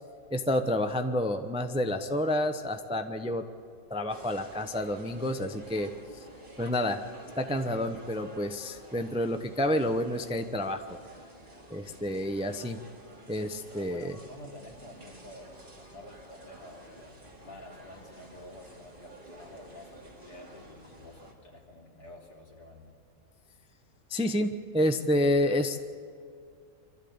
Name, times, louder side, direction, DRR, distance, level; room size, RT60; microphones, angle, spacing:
voice 1, 0.3-3.4 3.9-6.2 6.6-7.0 7.4-11.0 11.7-12.8 13.3-14.2 24.1-25.8, left 1 dB, 5° right, 7 dB, 0.5 m, -29 dB
sound 1, 4.1-21.3, right 1 dB, 35° right, 2.7 m, -51 dB
voice 2, 11.9-12.2 13.7-22.9, left 1 dB, 80° left, -2 dB, 3.9 m, -50 dB
24.5 x 13.5 x 8.7 m, 2.3 s
omnidirectional pair, 1.7 m